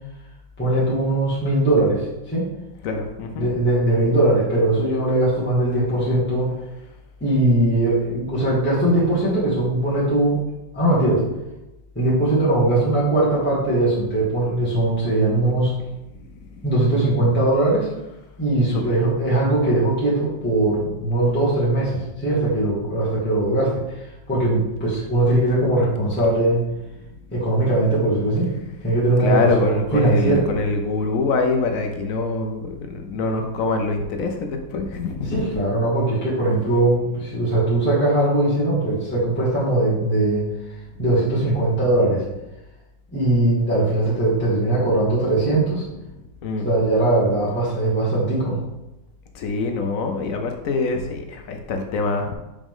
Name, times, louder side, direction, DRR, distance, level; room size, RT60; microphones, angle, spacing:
voice 1, 0.6-2.4 3.4-6.5 7.2-10.4 10.7-11.2 11.9-15.7 16.6-17.9 18.4-23.8 24.3-26.6 27.3-28.5 28.8-30.4 35.3-40.4 41.0-42.2 43.1-45.8 46.6-48.6, right 2 dB, 5° left, -9 dB, 1.6 m, -20 dB
voice 2, 2.8-3.5 16.4-16.6 18.7-18.9 29.2-35.6 46.4-46.7 49.3-52.3, left 3 dB, 65° left, 4 dB, 0.8 m, -25 dB
5.1 x 4.9 x 3.7 m, 0.98 s
omnidirectional pair, 2.0 m